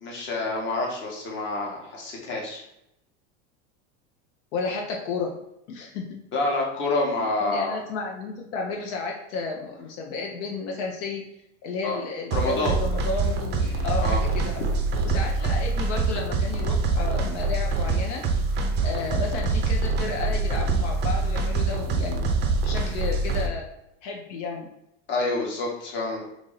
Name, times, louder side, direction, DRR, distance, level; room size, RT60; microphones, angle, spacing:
voice 1, 0.0-2.6 6.3-7.7 11.8-12.0 12.3-12.8 14.0-14.2 25.1-26.2, left 2 dB, 30° left, -1 dB, 1.0 m, -27 dB
voice 2, 4.5-5.4 5.7-6.2 7.4-11.3 11.6-14.7 15.0-18.2 18.8-22.3 22.6-23.6 24.0-24.7, left 4 dB, 70° left, 1 dB, 0.7 m, -32 dB
sound 1, 12.3-23.5, right 3 dB, 30° right, 0.5 m, -25 dB
3.0 x 2.6 x 3.9 m, 0.81 s
supercardioid pair, 140°, 37 cm